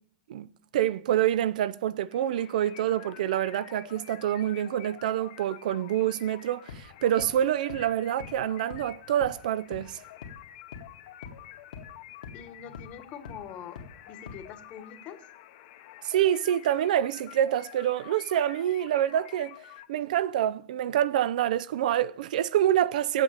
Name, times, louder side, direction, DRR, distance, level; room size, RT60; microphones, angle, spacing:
voice 1, 0.3-10.0 16.0-19.6 19.9-23.2, right 11 dB, 65° right, 0.4 m, -26 dB
sound 1, 2.1-19.9, left 14 dB, 50° left, 0.9 m, -49 dB
sound 2, 6.7-6.8 7.2-7.3 7.7-7.8 8.2-8.3 8.7-8.8 9.2-9.3 9.7-9.8 10.2-10.3 10.7-10.8 11.2-11.3 11.7-11.8 12.2-12.3 12.7-12.8 13.3-13.4 13.8-13.9 14.3-14.4, left 6 dB, 75° left, 1.8 m, -41 dB
voice 2, 12.3-15.2, left 8 dB, 30° left, 1.2 m, -44 dB
8.3 x 8.1 x 8.6 m
supercardioid pair, 165°, 5 cm